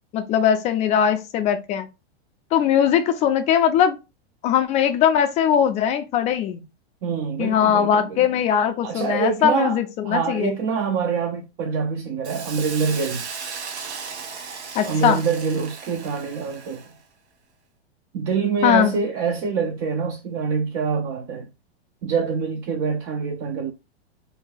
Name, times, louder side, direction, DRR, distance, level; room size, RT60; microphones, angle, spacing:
voice 1, 0.1-1.9 2.5-4.0 4.4-6.6 7.4-10.5 14.7-15.2 18.6-18.9, left 9 dB, 20° left, 0.3 m, -20 dB
voice 2, 7.0-8.3 8.8-9.8 10.0-13.2 14.9-16.8 18.1-21.5 22.0-23.7, right 5 dB, 40° right, 0.5 m, -25 dB
Hiss, 12.2-17.0, right 5 dB, 80° right, 0.8 m, -36 dB
2.7 x 2.1 x 3.9 m
hypercardioid pair, 115°, 32 cm